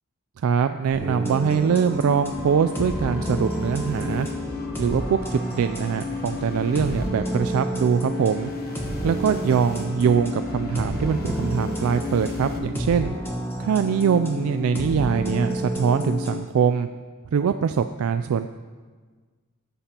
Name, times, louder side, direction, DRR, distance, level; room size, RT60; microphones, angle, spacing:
voice 1, 0.4-4.3 4.8-8.5 9.0-13.1 13.6-16.9 17.3-18.5, right 6 dB, 70° right, 9 dB, 0.3 m, -23 dB
sound 1, 0.9-16.4, equal, 10° left, 1.2 m, -30 dB
sound 2, 1.6-12.6, left 1 dB, 45° left, 1.1 m, -41 dB
18.5 x 6.9 x 2.9 m, 1.5 s
head